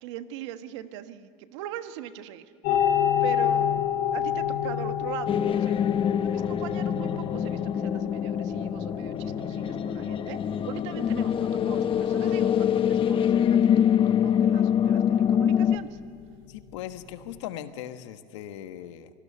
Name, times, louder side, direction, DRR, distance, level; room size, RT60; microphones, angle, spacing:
voice 1, 0.0-2.8 3.2-10.4 10.7-16.0, right 12 dB, 85° right, 9 dB, 1.4 m, -41 dB
sound 1, 2.6-17.4, left 9 dB, 70° left, 5.5 m, -31 dB
sound 2, 5.3-15.8, left 9 dB, 35° left, 1.1 m, -25 dB
voice 2, 16.5-19.1, left 11 dB, 90° left, 9 dB, 1.4 m, -39 dB
25.5 x 18.5 x 9.9 m, 2.2 s
supercardioid pair, 105°, 15 cm